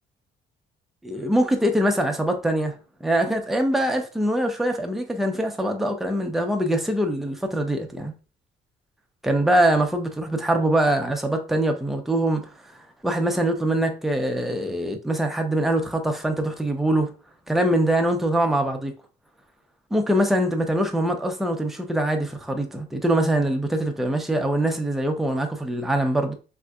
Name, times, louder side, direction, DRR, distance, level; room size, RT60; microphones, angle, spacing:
voice 1, 1.0-2.7 3.0-8.1 9.2-12.4 13.0-17.1 17.5-18.9 19.9-26.3, right 1 dB, ahead, 0.5 m, -23 dB
3.5 x 2.6 x 2.3 m
cardioid pair, 90°, 20 cm